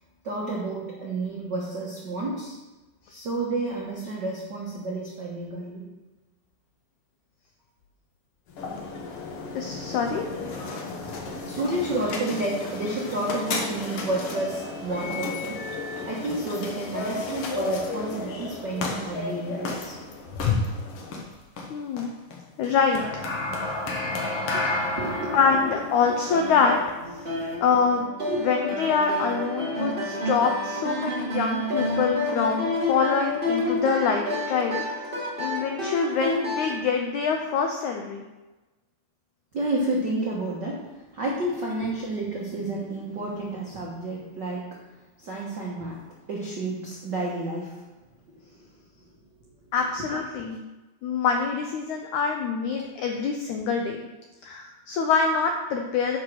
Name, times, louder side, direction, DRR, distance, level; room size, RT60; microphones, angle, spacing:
voice 1, 0.2-2.6 3.1-5.8 11.0-11.1 11.5-15.6 16.0-20.0 24.5-25.7 27.3-27.4 28.3-28.4 39.5-44.8 45.2-47.8 48.5-48.6 49.0-49.1 50.0-50.2, right 2 dB, 80° right, -4 dB, 0.9 m, -30 dB
sound 1, 8.5-27.6, left 3 dB, 70° left, 1.4 m, -32 dB
voice 2, 9.6-10.3 21.7-22.2 22.6-23.0 25.3-26.8 27.6-28.1 28.4-34.8 35.4-38.2 49.7-50.6 51.0-54.0 54.4-56.2, left 5 dB, 85° left, 3 dB, 1.7 m, -25 dB
sound 2, 25.0-36.8, left 1 dB, 45° right, 0.7 m, -30 dB
9.4 x 5.4 x 6.2 m, 1.1 s
omnidirectional pair, 4.3 m